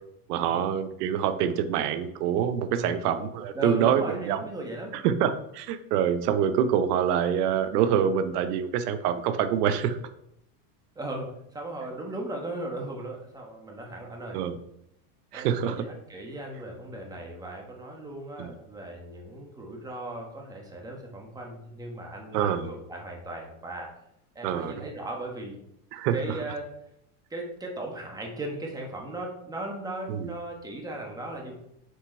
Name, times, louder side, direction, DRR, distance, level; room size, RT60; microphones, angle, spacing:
voice 1, 0.3-4.4 4.9-10.0 14.3-14.6 15.3-15.9 18.4-18.5 22.3-22.8 24.4-24.9 25.9-26.4 30.1-30.3, right 8 dB, 90° right, 11 dB, 0.8 m, -26 dB
voice 2, 3.5-5.0 10.9-14.4 15.3-23.9 24.3-25.6 26.1-26.7 27.3-31.5, right 1 dB, 10° right, 0 dB, 1.1 m, -37 dB
6.4 x 4.6 x 4.4 m, 0.78 s
supercardioid pair, 150°, 45 cm